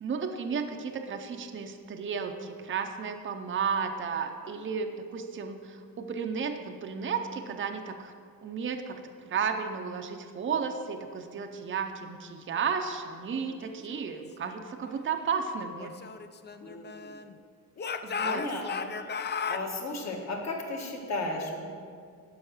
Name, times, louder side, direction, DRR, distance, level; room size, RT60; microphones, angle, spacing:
voice 1, 0.0-8.1 8.4-9.0 9.3-15.9 18.0-18.4, right 6 dB, 35° right, 5 dB, 0.6 m, -33 dB
Speech / Shout, 15.8-17.3 17.8-19.7, left 6 dB, 30° left, 0.4 m, -35 dB
voice 2, 16.6-17.2 17.8-21.6, left 2 dB, 50° left, 1 dB, 1.6 m, -36 dB
12.0 x 5.7 x 6.4 m, 2.1 s
wide cardioid pair, 175°, 35 cm